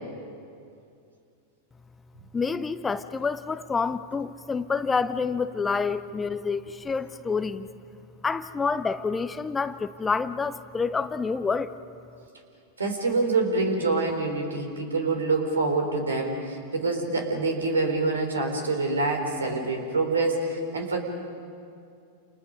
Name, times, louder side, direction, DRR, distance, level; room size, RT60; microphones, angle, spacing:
voice 1, 2.3-7.7 8.2-11.7, left 5 dB, 15° left, 14 dB, 0.7 m, -28 dB
voice 2, 12.8-21.0, right 3 dB, 70° right, 4 dB, 3.8 m, -26 dB
29.5 x 28.5 x 5.3 m, 2.4 s
figure-of-eight pair, 90°, 0 cm